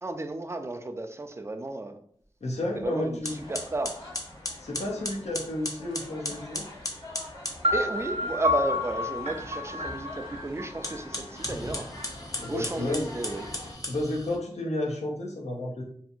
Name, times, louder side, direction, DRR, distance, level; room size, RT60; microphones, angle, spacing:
voice 1, 0.0-2.0 2.8-4.0 7.7-11.9 12.5-13.5, right 2 dB, 25° right, 6 dB, 0.3 m, -33 dB
voice 2, 2.4-3.3 4.6-6.7 12.4-13.0 13.9-15.8, left 1 dB, 80° left, -1 dB, 0.6 m, -31 dB
sound 1, 2.7-2.8 3.2-7.6 10.7-14.4, left 1 dB, 30° left, 0.6 m, -36 dB
sound 2, 3.2-13.7, left 1 dB, 50° left, 1.2 m, -45 dB
sound 3, 7.6-11.5, left 2 dB, 70° right, 0.6 m, -30 dB
2.7 x 2.5 x 2.4 m, 0.62 s
wide cardioid pair, 50°, 11 cm